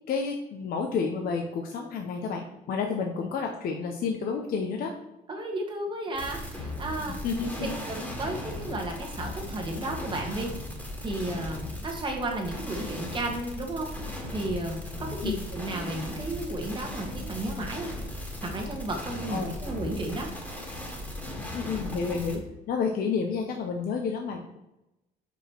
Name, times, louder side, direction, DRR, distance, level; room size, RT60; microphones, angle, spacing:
voice 1, 0.1-4.9 7.2-7.7 15.2-15.4 19.3-19.6 21.5-24.6, left 5 dB, 60° left, 3 dB, 0.7 m, -30 dB
voice 2, 5.3-7.2 7.6-10.5 11.0-17.9 18.4-20.3, right 1 dB, 30° right, 1 dB, 1.5 m, -33 dB
sound 1, 6.1-22.4, left 1 dB, 10° left, 1.7 m, -37 dB
5.3 x 4.9 x 4.4 m, 0.91 s
cardioid pair, 110°, 17 cm